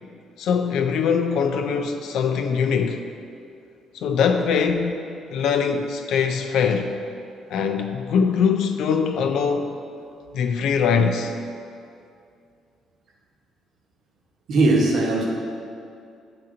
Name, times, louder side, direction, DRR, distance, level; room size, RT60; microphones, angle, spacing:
voice 1, 0.4-3.0 3.9-7.0 7.5-9.7 10.3-11.3, left 6 dB, 75° left, 5 dB, 0.4 m, -22 dB
voice 2, 14.5-15.2, right 2 dB, 65° right, -2 dB, 1.0 m, -19 dB
8.5 x 2.9 x 3.8 m, 2.5 s
supercardioid pair, 70°, 0 cm